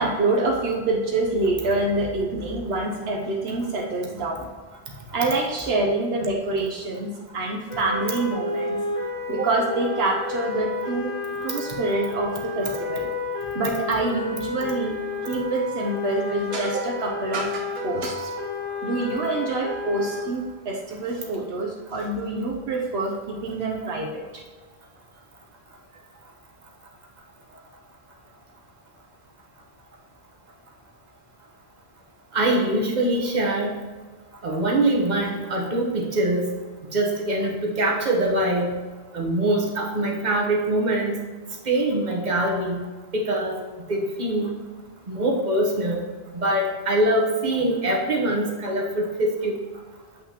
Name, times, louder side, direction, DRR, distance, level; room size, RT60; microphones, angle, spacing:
voice 1, 0.0-4.5 5.1-8.8 9.3-11.1 11.4-13.1 13.5-15.0 15.3-18.3 18.8-24.4, right 2 dB, 75° right, 0 dB, 1.0 m, -26 dB
sound 1, 7.7-20.2, left 3 dB, 30° left, 1.8 m, -31 dB
voice 2, 32.3-33.8 34.4-36.5 36.9-38.7 39.1-41.1 41.7-42.9 43.1-43.6 43.9-44.5 45.1-46.0 46.3-49.6, right 1 dB, 45° right, -1 dB, 1.2 m, -23 dB
8.0 x 5.7 x 2.9 m, 1.4 s
omnidirectional pair, 1.1 m